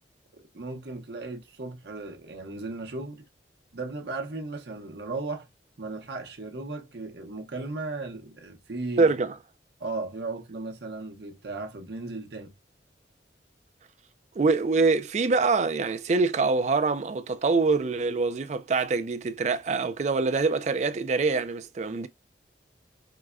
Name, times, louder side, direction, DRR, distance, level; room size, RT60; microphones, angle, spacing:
voice 1, 0.3-3.2 3.7-5.5 5.8-9.1 9.8-12.5, right 3 dB, 70° right, 0.8 m, -36 dB
voice 2, 9.0-9.4 14.4-22.1, right 4 dB, 40° right, 0.4 m, -24 dB
4.7 x 2.1 x 2.3 m
head